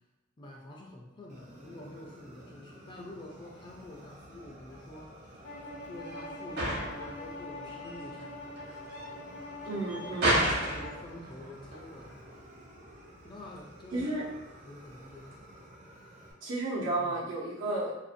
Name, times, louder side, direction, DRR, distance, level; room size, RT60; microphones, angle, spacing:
voice 1, 0.4-5.3 5.9-8.6 9.7-12.1 13.2-14.2 14.6-15.5 17.0-17.2, left 1 dB, 25° left, -1 dB, 0.3 m, -47 dB
Fire, 1.3-16.3, right 1 dB, 40° right, 0.5 m, -52 dB
sound 1, 3.7-15.5, right 1 dB, 60° right, 0.9 m, -35 dB
Bowed string instrument, 5.4-11.1, left 2 dB, 80° left, 0.8 m, -44 dB
voice 2, 9.6-10.4 13.9-14.2 16.4-18.0, right 2 dB, 85° right, -6 dB, 0.8 m, -32 dB
2.5 x 2.1 x 2.5 m, 1.0 s
head